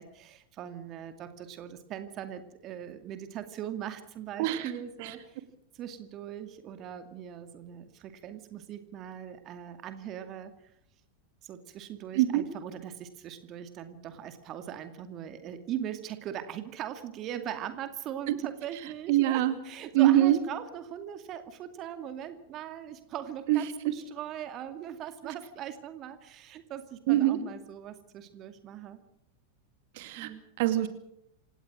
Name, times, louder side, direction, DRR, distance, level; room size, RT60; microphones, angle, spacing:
voice 1, 0.0-5.4 5.7-10.5 11.4-29.0 30.2-30.4, right 10 dB, 35° right, 9 dB, 2.3 m, -40 dB
voice 2, 4.4-4.7 5.0-5.1 12.1-12.4 19.1-19.6 19.9-20.4 23.5-23.6 27.1-27.4 30.0-30.3 30.6-30.9, right 13 dB, 50° right, 10 dB, 2.4 m, -23 dB
28.0 x 18.0 x 6.3 m, 0.75 s
figure-of-eight pair, 90°, 0 cm